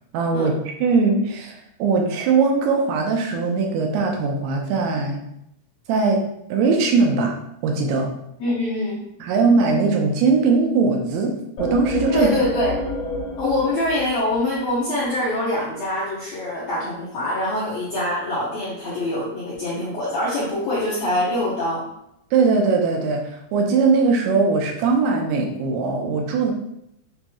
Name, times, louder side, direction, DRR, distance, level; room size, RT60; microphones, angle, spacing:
voice 1, 0.1-5.2 5.9-6.2 6.5-7.4 7.6-8.1 9.2-12.3 22.3-26.5, right 4 dB, 85° right, 1 dB, 2.8 m, -20 dB
voice 2, 8.4-9.0 12.1-12.7 13.4-21.8, left 1 dB, 75° left, -8 dB, 1.6 m, -24 dB
sound 1, 11.6-15.2, left 2 dB, 55° left, 2.6 m, -29 dB
6.9 x 3.0 x 2.3 m, 0.79 s
omnidirectional pair, 4.4 m